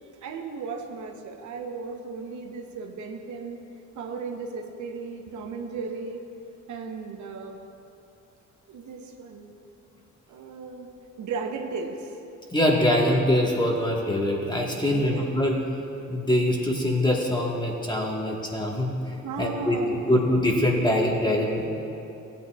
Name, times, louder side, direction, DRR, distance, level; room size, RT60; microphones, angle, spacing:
voice 1, 0.2-3.6 4.0-6.2 6.7-7.6 8.7-9.6 10.3-10.9 11.2-12.1 14.9-15.3 19.2-20.2, right 4 dB, 75° right, 3 dB, 0.9 m, -35 dB
voice 2, 12.5-15.6 16.1-18.9 19.4-19.8 20.1-21.7, left 1 dB, 15° left, -1 dB, 1.5 m, -23 dB
15.0 x 8.7 x 2.4 m, 2.9 s
cardioid pair, 90°, 30 cm